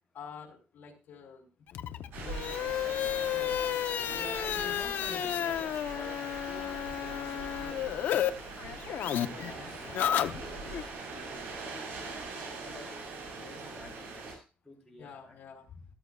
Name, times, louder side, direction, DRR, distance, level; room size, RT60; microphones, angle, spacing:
voice 1, 0.1-1.5 1.7-2.7 3.3-3.6 4.0-4.7 5.1-6.0 9.4-9.7 15.0-15.9, left 5 dB, 55° left, 0 dB, 3.6 m, -48 dB
sound 1, 1.7-8.3 8.6-10.8, left 11 dB, 75° left, 0.8 m, -32 dB
sound 2, 2.1-14.3, right 3 dB, 90° right, 6.7 m, -42 dB
voice 2, 2.6-3.4 4.3-8.6 9.1-11.4 11.7-11.9 12.5-12.9 13.3-15.3, left 1 dB, ahead, -3 dB, 4.4 m, -51 dB
14.0 x 13.5 x 2.4 m, 0.32 s
cardioid pair, 150°, 3 cm